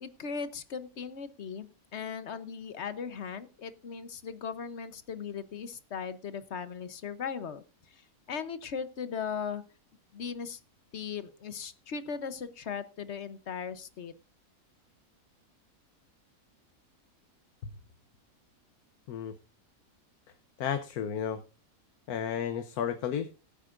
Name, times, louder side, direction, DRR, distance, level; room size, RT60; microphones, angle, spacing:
voice 1, 0.0-8.0 8.3-9.6 10.1-10.6 10.9-14.1, left 6 dB, 55° left, 12 dB, 1.1 m, -38 dB
voice 2, 20.6-21.4 22.1-23.3, left 8 dB, 85° left, 9 dB, 1.3 m, -32 dB
20.5 x 9.0 x 2.5 m, 0.32 s
omnidirectional pair, 1.6 m